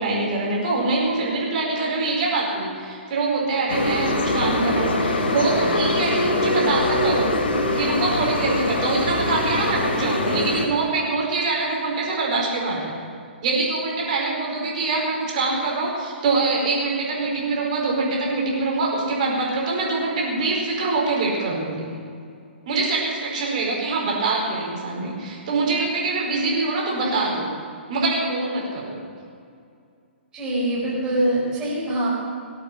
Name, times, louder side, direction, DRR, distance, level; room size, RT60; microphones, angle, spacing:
voice 1, 0.0-7.3 7.7-12.9 13.4-21.9 22.7-27.5 27.9-29.0, right 3 dB, 40° right, -2 dB, 4.9 m, -24 dB
sound 1, 3.7-10.7, left 1 dB, 60° left, 3.1 m, -23 dB
voice 2, 30.3-32.3, right 1 dB, 15° right, -6 dB, 4.5 m, -24 dB
19.0 x 8.7 x 7.6 m, 2.4 s
figure-of-eight pair, 125°, 6 cm